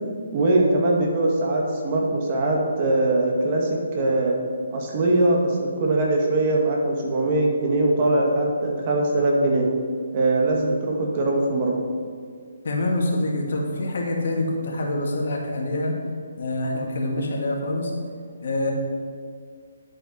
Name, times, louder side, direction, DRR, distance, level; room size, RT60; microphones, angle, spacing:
voice 1, 0.3-4.4 4.7-9.7 10.1-11.8, right 2 dB, 35° right, -1 dB, 1.9 m, -21 dB
voice 2, 12.6-16.0 16.4-17.9 18.4-18.7, left 1 dB, 60° left, -1 dB, 2.2 m, -25 dB
10.5 x 8.0 x 4.4 m, 2.1 s
hypercardioid pair, 155°, 0 cm